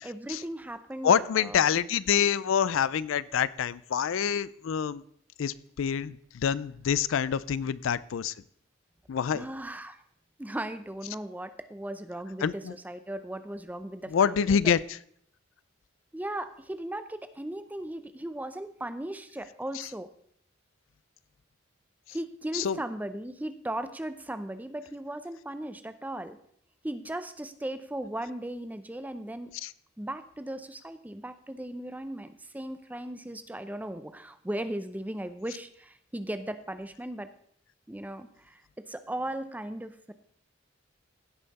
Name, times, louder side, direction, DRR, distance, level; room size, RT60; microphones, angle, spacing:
voice 1, 0.0-1.6 9.3-10.0 10.4-14.7 16.1-20.1 22.1-26.4 26.8-29.5 30.0-37.3 37.9-40.1, right 1 dB, 10° right, 11 dB, 0.5 m, -37 dB
voice 2, 1.0-5.0 5.4-8.3 9.1-9.4 12.4-12.7 14.1-14.8 19.7-19.9 22.5-22.8 29.6-29.7, left 7 dB, 75° left, 18 dB, 0.4 m, -26 dB
16.5 x 5.6 x 4.1 m, 0.65 s
head